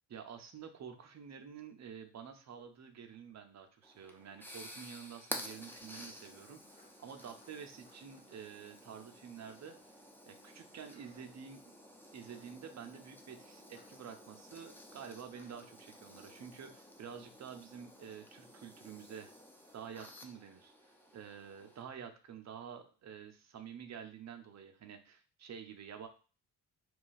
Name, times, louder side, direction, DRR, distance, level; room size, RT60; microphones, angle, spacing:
voice 1, 0.1-10.0 10.3-11.6 12.1-19.3 19.7-26.1, right 7 dB, 40° right, 6 dB, 0.6 m, -49 dB
sound 1, 2.8-5.3 5.7-10.0 10.8-11.6 12.1-12.5 13.7-14.0 14.5-14.9 15.2-15.5 16.3-17.4 21.9-22.2, left 1 dB, 25° left, 1.1 m, -71 dB
sound 2, 3.8-21.8, equal, 5° left, 0.6 m, -52 dB
2.4 x 2.3 x 4.0 m, 0.37 s
supercardioid pair, 55°, 41 cm